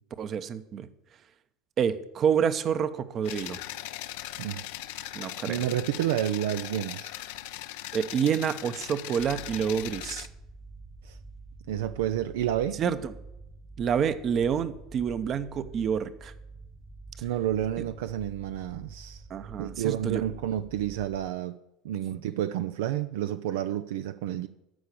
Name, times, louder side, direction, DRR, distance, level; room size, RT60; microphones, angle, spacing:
voice 1, 0.2-0.9 1.8-3.6 5.1-5.6 7.9-10.3 12.8-13.1 13.8-16.3 19.3-20.2, right 7 dB, 40° right, 0.8 m, -28 dB
sound 1, 3.2-10.3, left 14 dB, 75° left, 0.5 m, -39 dB
voice 2, 5.5-7.1 11.0-11.2 11.7-12.8 17.2-19.2 19.6-21.6 21.8-24.5, right 11 dB, 80° right, 0.4 m, -30 dB
sound 2, 9.2-21.3, right 3 dB, ahead, 0.8 m, -47 dB
12.5 x 4.8 x 8.4 m
hypercardioid pair, 90°, 0 cm